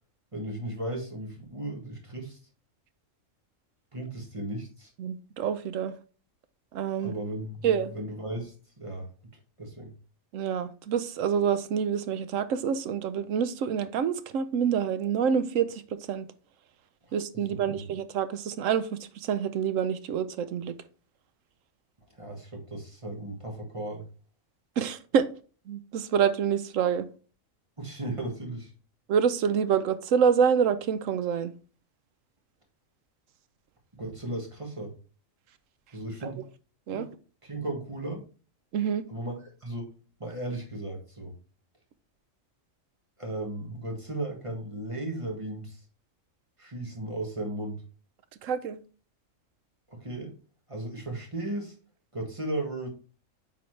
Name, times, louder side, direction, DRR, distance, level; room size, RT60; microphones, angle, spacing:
voice 1, 0.3-2.4 3.9-4.9 7.0-9.1 9.6-9.9 17.0-17.9 22.1-24.0 27.8-28.7 33.9-34.9 35.9-36.4 36.9-37.0 37.4-38.2 39.1-39.9 40.2-41.3 43.2-45.8 46.6-47.8 49.9-50.4 50.7-51.8 52.1-52.9, right 1 dB, 25° right, 1.6 m, -36 dB
voice 2, 5.0-5.9 6.7-7.1 7.6-7.9 10.3-15.8 16.1-16.3 17.1-18.9 19.2-20.7 24.8-25.3 25.7-27.1 29.1-31.5 36.2-36.3 36.9-37.1 38.7-39.0 48.4-48.8, right 7 dB, 80° right, 1.0 m, -27 dB
8.3 x 4.1 x 3.2 m
omnidirectional pair, 1.4 m